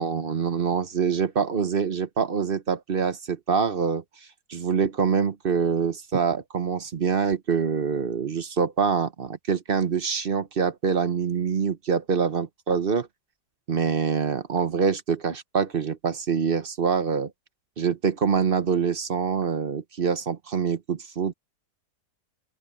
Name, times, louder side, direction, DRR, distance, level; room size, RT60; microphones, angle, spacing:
voice 1, 0.0-4.0 4.5-13.1 13.7-17.3 17.8-21.3, right 6 dB, 40° right, 0.9 m, -25 dB
open air
omnidirectional pair, 1.8 m